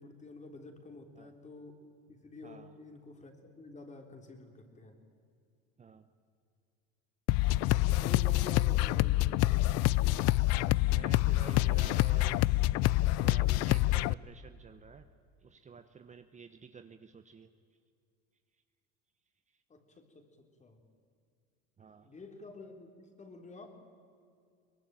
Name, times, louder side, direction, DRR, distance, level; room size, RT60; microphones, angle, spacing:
voice 1, 0.0-5.0 8.0-9.7 19.7-20.8 22.0-23.9, left 2 dB, 25° left, 5 dB, 3.6 m, -50 dB
voice 2, 2.4-2.7 5.8-6.1 8.8-8.9 10.8-12.4 13.2-15.1 15.4-17.5 21.8-22.1, right 6 dB, 25° right, 9 dB, 1.0 m, -51 dB
sound 1, 7.3-14.1, left 17 dB, 55° left, 0.5 m, -27 dB
23.5 x 19.5 x 9.2 m, 2.4 s
supercardioid pair, 105°, 31 cm